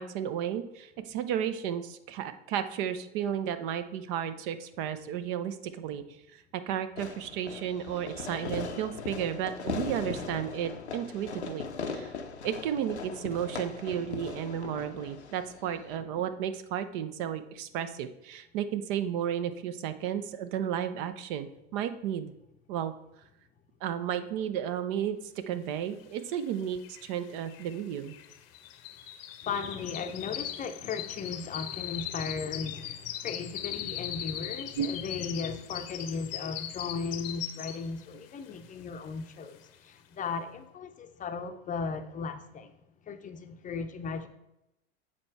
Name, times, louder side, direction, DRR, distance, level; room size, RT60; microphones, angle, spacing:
voice 1, 0.0-6.0 6.5-12.1 12.4-22.3 22.7-22.9 23.8-25.2 25.5-28.1 34.8-34.9, right 9 dB, 50° right, 0.6 m, -33 dB
Fireworks, 7.0-16.0, left 5 dB, 90° left, 0.7 m, -39 dB
sound 1, 26.3-26.4 26.6-38.1 38.5-38.8 39.2-39.3, left 11 dB, 60° left, 0.7 m, -40 dB
voice 2, 29.4-42.7 43.0-44.3, left 5 dB, 25° left, 0.6 m, -36 dB
7.5 x 4.3 x 4.5 m
figure-of-eight pair, 80°, 33 cm